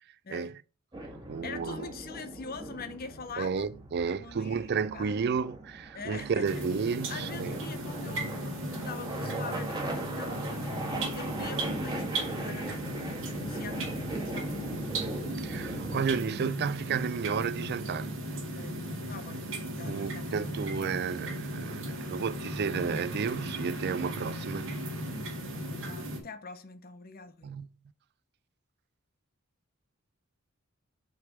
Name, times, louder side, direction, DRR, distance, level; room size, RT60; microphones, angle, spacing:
voice 1, 0.2-0.6 1.4-3.7 4.1-5.2 5.9-6.7 7.1-14.8 18.3-18.8 19.1-19.5 19.8-20.5 25.8-27.5, left 4 dB, 45° left, 0.9 m, -44 dB
sound 1, 0.9-16.2, right 2 dB, 20° right, 1.4 m, -40 dB
voice 2, 1.3-1.9 3.4-7.6 14.7-14.8 15.4-18.2 19.8-24.7 27.4-27.7, right 6 dB, 50° right, 0.4 m, -32 dB
sound 2, 6.4-26.2, right 1 dB, 70° right, 2.0 m, -36 dB
6.4 x 3.3 x 5.8 m
head